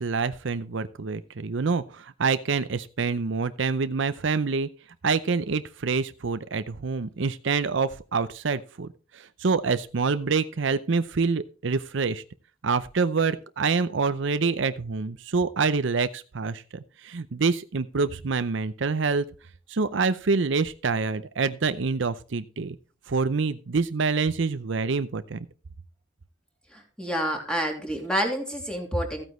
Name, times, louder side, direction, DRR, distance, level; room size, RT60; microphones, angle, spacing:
voice 1, 0.0-4.7 5.0-8.9 9.1-12.2 12.6-16.6 17.0-19.3 19.7-22.8 23.1-25.5, right 4 dB, 65° right, 12 dB, 0.6 m, -26 dB
voice 2, 27.0-29.2, equal, 5° left, 1 dB, 2.9 m, -28 dB
15.0 x 9.3 x 3.1 m, 0.36 s
head